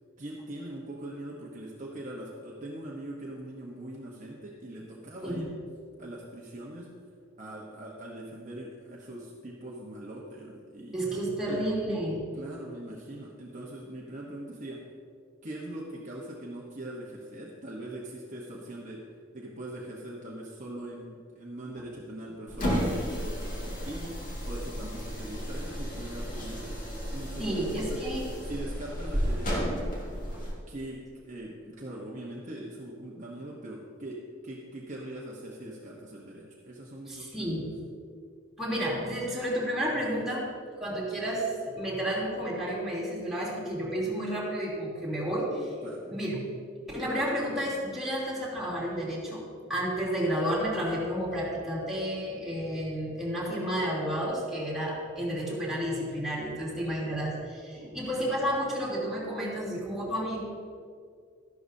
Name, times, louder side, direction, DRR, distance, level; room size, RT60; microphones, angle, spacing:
voice 1, 0.2-5.5 6.0-6.9 7.4-11.0 11.5-11.6 12.4-14.9 15.4-19.1 19.3-26.8 27.1-28.0 28.4-29.7 30.7-37.5 40.9-41.0 45.8-46.1 57.7-58.0, right 1 dB, 40° right, -3 dB, 1.1 m, -41 dB
voice 2, 10.9-12.2 26.4-26.5 27.4-28.3 37.1-37.7 38.6-40.5 40.8-45.7 46.0-46.5 46.9-60.4, equal, ahead, -8 dB, 3.1 m, -31 dB
sound 1, 22.5-30.6, equal, 40° left, 2.2 m, -33 dB
13.0 x 11.5 x 2.7 m, 2.2 s
head